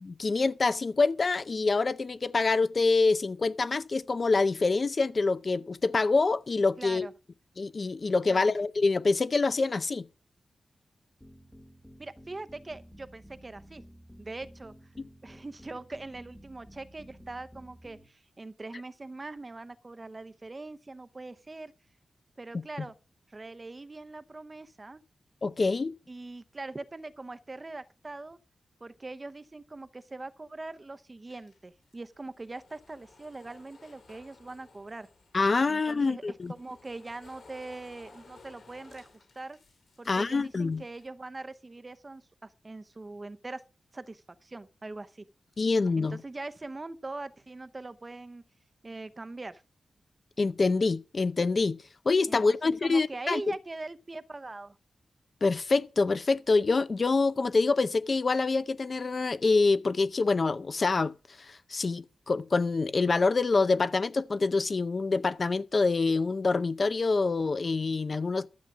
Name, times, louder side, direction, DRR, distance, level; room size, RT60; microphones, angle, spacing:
voice 1, 0.0-7.1 7.6-10.1 15.0-15.1 25.4-25.9 35.3-36.5 40.1-40.8 45.6-46.2 50.4-51.8 52.1-53.4 55.4-61.1 61.4-68.5, left 3 dB, 35° left, 0.6 m, -26 dB
voice 2, 6.8-7.1 8.2-8.5 12.0-13.8 14.2-14.7 15.2-21.7 22.4-22.9 23.3-25.0 26.1-28.4 28.8-35.1 35.7-39.6 40.0-43.6 43.9-45.2 46.0-48.4 48.8-49.6 52.3-54.8, right 2 dB, 25° right, 0.7 m, -42 dB
sound 1, 11.2-18.1, equal, 5° left, 1.4 m, -53 dB
sound 2, 31.3-35.6 36.1-41.1, left 4 dB, 60° left, 4.2 m, -57 dB
13.0 x 8.2 x 6.0 m
wide cardioid pair, 175°, 0 cm